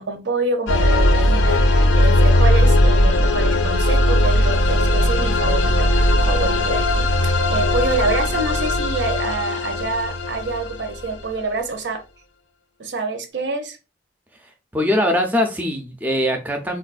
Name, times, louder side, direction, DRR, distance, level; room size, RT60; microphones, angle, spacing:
voice 1, 0.0-12.0 12.8-13.8, right 2 dB, 70° right, 7 dB, 0.6 m, -26 dB
sound 1, 0.7-11.3, left 1 dB, 90° left, 0.4 m, -18 dB
voice 2, 14.7-16.8, left 1 dB, 10° right, 3 dB, 0.4 m, -21 dB
3.9 x 2.2 x 2.4 m, 0.30 s
head